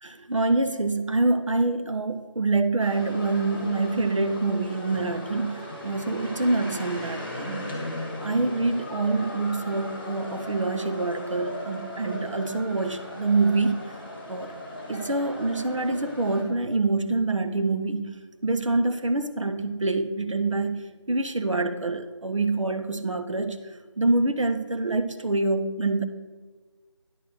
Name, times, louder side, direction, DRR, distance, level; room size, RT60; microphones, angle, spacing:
voice 1, 0.0-7.8 8.2-14.0 14.3-14.5 14.9-26.0, right 3 dB, 80° right, 9 dB, 0.9 m, -26 dB
sound 1, 2.8-16.4, left 1 dB, 20° left, 1.4 m, -37 dB
10.0 x 4.3 x 7.7 m, 1.4 s
figure-of-eight pair, 175°, 16 cm